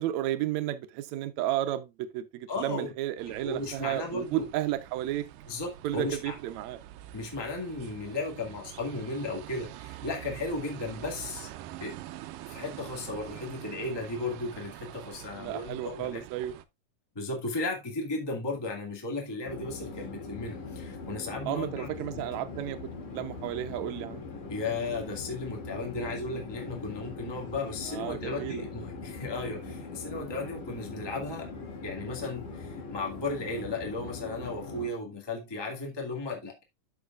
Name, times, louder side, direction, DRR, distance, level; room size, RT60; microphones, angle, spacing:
voice 1, 0.0-5.3 5.8-6.8 15.3-16.6 21.5-22.8 23.1-24.2 27.9-28.6, right 13 dB, 70° right, 1.8 m, -32 dB
voice 2, 2.5-2.9 3.3-4.5 5.5-6.3 7.1-11.5 11.8-12.0 12.5-16.2 17.1-22.2 24.5-31.5 31.8-36.6, left 3 dB, 10° left, 1.3 m, -35 dB
sound 1, 3.2-16.6, right 14 dB, 85° right, 2.3 m, -45 dB
Chatter / Fixed-wing aircraft airplane, 19.4-34.9, left 4 dB, 75° left, 3.7 m, -41 dB
13.5 x 5.1 x 2.4 m
omnidirectional pair, 3.8 m